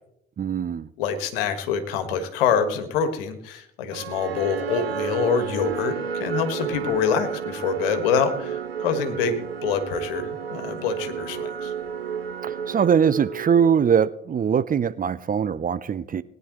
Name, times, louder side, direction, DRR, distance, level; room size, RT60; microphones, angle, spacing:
voice 1, 0.4-0.9 12.4-16.2, right 7 dB, 30° right, 0.6 m, -22 dB
voice 2, 1.0-11.7, left 6 dB, 70° left, 1.6 m, -25 dB
sound 1, 3.9-14.1, right 7 dB, 90° right, 0.6 m, -32 dB
20.5 x 10.0 x 3.1 m
figure-of-eight pair, 50°, 29 cm